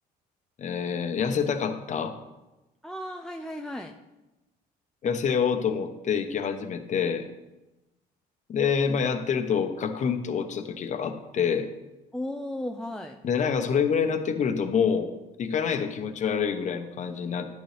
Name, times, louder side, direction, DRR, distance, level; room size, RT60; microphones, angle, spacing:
voice 1, 0.6-2.2 5.0-7.3 8.5-11.7 13.2-17.5, left 6 dB, 45° left, 8 dB, 1.0 m, -27 dB
voice 2, 2.8-3.9 12.1-13.2, left 1 dB, 5° left, 3 dB, 0.5 m, -35 dB
10.5 x 9.3 x 3.4 m, 1.0 s
cardioid pair, 110°, 17 cm